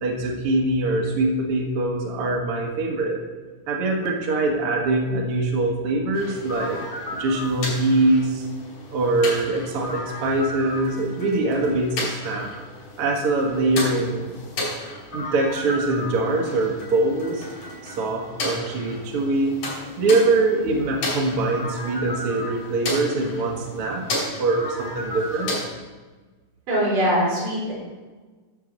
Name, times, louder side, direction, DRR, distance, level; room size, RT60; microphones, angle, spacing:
voice 1, 0.0-3.2 3.7-6.8 7.1-8.5 8.9-12.5 13.0-14.3 15.1-17.5 17.8-19.6 20.0-25.6, right 2 dB, 50° right, -1 dB, 2.1 m, -23 dB
sound 1, 6.1-25.7, left 1 dB, 70° left, 4.7 m, -33 dB
voice 2, 26.7-27.7, equal, 80° right, -7 dB, 5.8 m, -22 dB
12.5 x 4.6 x 7.3 m, 1.3 s
omnidirectional pair, 3.7 m